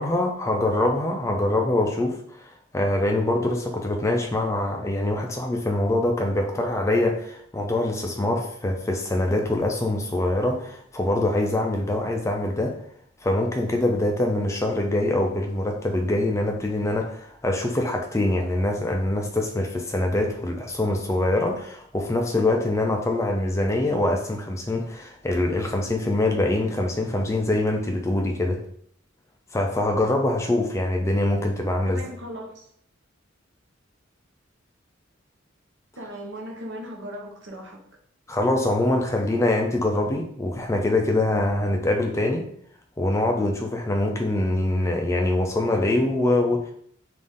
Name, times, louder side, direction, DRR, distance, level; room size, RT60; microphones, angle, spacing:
voice 1, 0.0-12.7 13.2-28.6 29.5-32.0 38.3-42.5 43.0-46.7, left 1 dB, 15° left, 2 dB, 0.3 m, -24 dB
voice 2, 31.8-32.7 36.0-37.8, equal, 60° right, 1 dB, 0.8 m, -37 dB
3.8 x 2.5 x 3.6 m, 0.65 s
head